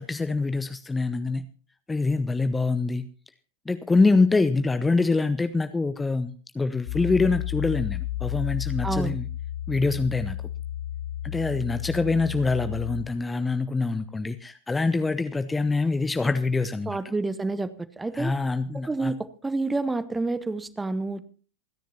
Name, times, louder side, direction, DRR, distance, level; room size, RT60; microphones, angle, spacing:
voice 1, 0.0-1.5 1.9-3.1 3.7-9.3 9.7-10.4 11.2-17.0 18.1-19.1, left 3 dB, 10° left, 11 dB, 0.6 m, -25 dB
sound 1, 6.9-13.0, left 13 dB, 50° left, 0.6 m, -32 dB
voice 2, 8.8-9.1 16.9-18.3 18.9-21.2, right 3 dB, 10° right, 15 dB, 0.9 m, -29 dB
27.5 x 10.5 x 2.9 m, 0.40 s
figure-of-eight pair, 90°, 0 cm